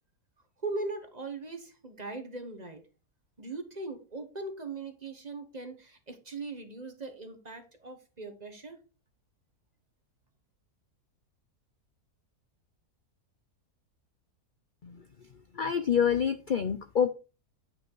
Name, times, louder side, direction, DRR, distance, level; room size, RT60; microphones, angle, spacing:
voice 1, 0.6-2.8 3.4-8.8, right 3 dB, 30° right, 8 dB, 1.3 m, -39 dB
voice 2, 15.6-17.1, left 7 dB, 55° left, 11 dB, 0.5 m, -26 dB
9.6 x 5.8 x 4.7 m, 0.32 s
omnidirectional pair, 1.6 m